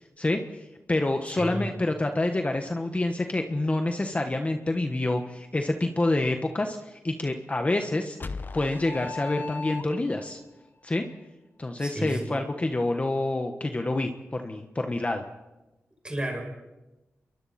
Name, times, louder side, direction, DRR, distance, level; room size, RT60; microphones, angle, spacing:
voice 1, 0.2-0.6 0.9-8.2 8.5-10.4 10.8-11.1 11.6-15.2, left 2 dB, 30° left, 5 dB, 1.4 m, -27 dB
voice 2, 1.4-1.7 11.8-12.4 16.0-16.4, right 1 dB, 20° right, 2 dB, 6.3 m, -32 dB
sound 1, 8.2-10.3, left 4 dB, 45° left, 0.8 m, -36 dB
28.5 x 23.0 x 4.3 m, 1.0 s
wide cardioid pair, 80°, 5 cm